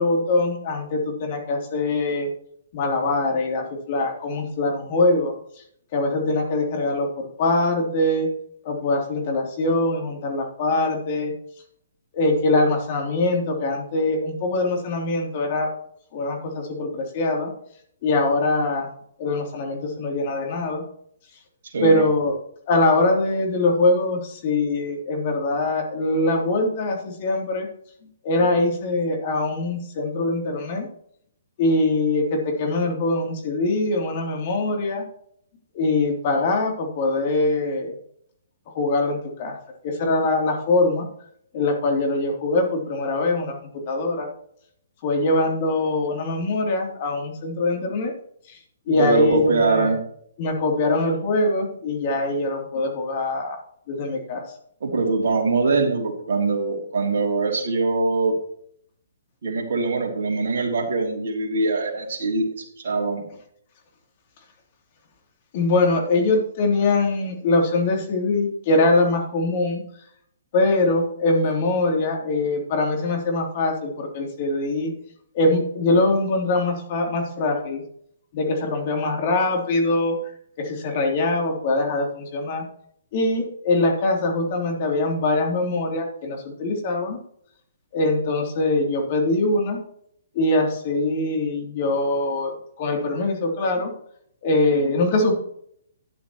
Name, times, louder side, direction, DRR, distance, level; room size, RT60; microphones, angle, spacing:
voice 1, 0.0-2.3 2.7-5.3 5.9-8.3 8.6-11.3 12.1-15.7 16.1-17.5 18.0-18.9 19.2-20.8 21.8-22.3 22.7-27.7 28.2-30.9 31.6-35.0 35.7-37.9 38.7-39.6 39.8-41.1 41.5-44.3 45.0-48.1 48.5-48.6 48.9-50.0 50.4-53.6 53.9-54.4 65.5-69.8 70.5-74.9 75.3-77.8 78.3-80.1 80.6-82.6 83.1-87.2 87.9-89.8 90.3-93.9 94.4-95.3, left 2 dB, 40° left, 1 dB, 3.2 m, -23 dB
voice 2, 48.9-50.0 54.8-58.4 59.4-63.2, right 3 dB, 60° right, 1 dB, 2.9 m, -23 dB
12.0 x 10.0 x 3.1 m, 0.67 s
figure-of-eight pair, 130°, 0 cm